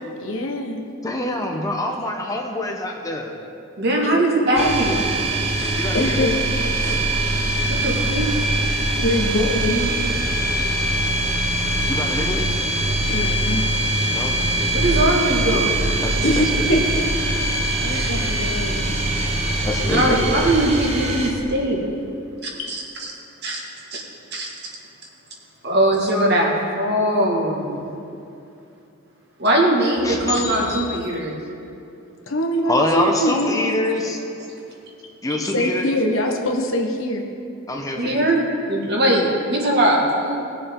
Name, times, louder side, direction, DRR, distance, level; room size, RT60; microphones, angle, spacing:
voice 1, 0.2-0.8 4.0-4.3 5.6-6.3 6.8-7.1 8.3-8.4 9.0-10.0 10.9-11.0 12.7-13.6 16.2-17.1 17.3-18.9 22.6-22.7 32.3-33.8 35.0-35.1 35.5-37.2, left 1 dB, 70° left, 2 dB, 1.3 m, -24 dB
voice 2, 1.0-3.3 5.8-6.4 11.9-12.4 14.1-15.1 16.0-16.7 19.6-20.4 30.0-31.0 32.7-34.2 35.2-35.9 37.7-38.3, left 1 dB, 15° left, 2 dB, 0.9 m, -25 dB
voice 3, 3.8-5.0 5.6-5.7 7.7-8.5 14.7-15.7 17.9-18.1 19.2-19.3 19.8-21.8 22.4-23.1 23.4-23.6 23.9-24.0 24.3-24.5 25.6-27.9 29.4-31.4 35.3-35.4 38.0-40.5, right 1 dB, 50° right, -2 dB, 2.0 m, -21 dB
sound 1, 4.6-21.3, right 1 dB, 30° right, 1.1 m, -22 dB
19.5 x 6.9 x 3.8 m, 2.7 s
head